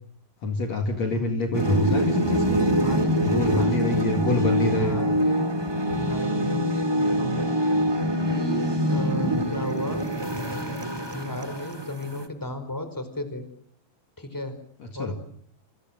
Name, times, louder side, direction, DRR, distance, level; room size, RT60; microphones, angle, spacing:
voice 1, 0.4-2.6 3.2-5.0 14.8-15.1, left 2 dB, 50° left, 5 dB, 3.1 m, -26 dB
sound 1, 1.5-12.2, equal, 10° right, 1.5 m, -25 dB
voice 2, 2.8-3.8 4.3-5.5 5.9-7.5 8.3-10.1 10.5-13.4 14.2-14.5 14.9-15.2, left 1 dB, 5° left, 10 dB, 4.5 m, -34 dB
29.0 x 25.0 x 7.8 m, 0.63 s
omnidirectional pair, 4.1 m